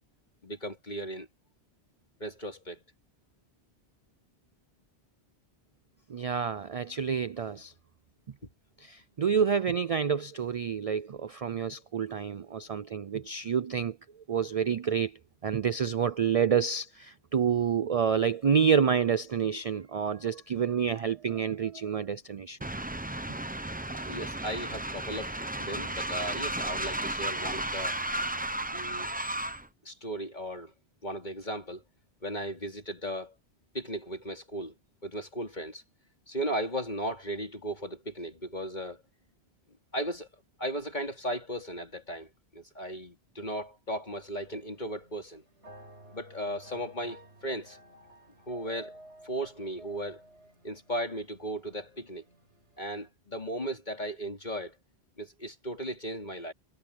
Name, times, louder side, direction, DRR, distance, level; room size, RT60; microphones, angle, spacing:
voice 1, 0.4-1.3 2.2-2.8 23.9-28.0 28.7-29.1 29.8-30.7 31.0-31.8 32.2-33.3 33.7-34.7 35.0-35.8 36.3-39.0 39.9-40.3 40.6-45.4 46.1-47.8 48.4-49.0 49.2-50.2 50.6-52.3 52.8-54.8 55.2-56.5, right 1 dB, 40° left, 4.0 m, -36 dB
voice 2, 6.1-7.7 8.8-14.0 14.3-15.2 15.4-22.6, right 7 dB, 50° right, 0.4 m, -28 dB
Train, 22.6-29.7, right 1 dB, 10° right, 0.7 m, -34 dB
sound 1, 44.1-53.1, right 1 dB, 90° right, 6.9 m, -54 dB
omnidirectional pair, 1.1 m